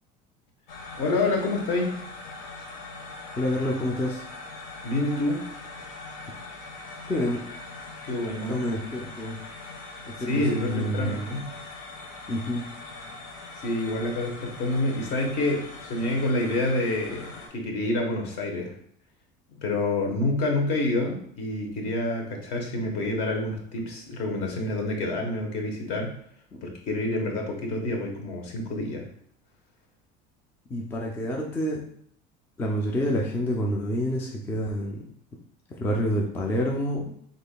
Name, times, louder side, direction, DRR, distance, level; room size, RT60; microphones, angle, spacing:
sound 1, 0.7-17.5, left 3 dB, 90° left, 1.3 m, -42 dB
voice 1, 1.0-2.0 4.8-5.4 8.0-8.6 10.3-11.5 13.6-18.7 19.6-26.2 26.6-29.0, left 2 dB, 55° left, 2 dB, 1.1 m, -28 dB
voice 2, 3.4-4.2 7.1-7.4 8.5-9.4 10.1-11.3 12.3-12.7 26.5-26.6 30.7-31.8 32.6-35.0 35.8-37.2, equal, 10° left, -1 dB, 0.3 m, -28 dB
5.3 x 3.9 x 2.2 m, 0.64 s
cardioid pair, 180°, 19 cm